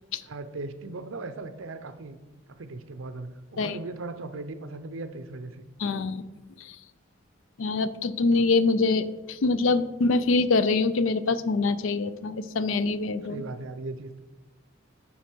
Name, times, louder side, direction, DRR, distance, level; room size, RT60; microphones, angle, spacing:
voice 1, 0.2-2.2 2.5-5.7 13.3-14.2, right 2 dB, 85° right, 10 dB, 0.7 m, -38 dB
voice 2, 5.8-6.3 6.6-6.8 7.6-13.4, left 3 dB, 75° left, 14 dB, 0.4 m, -24 dB
10.0 x 3.9 x 4.5 m, 1.2 s
head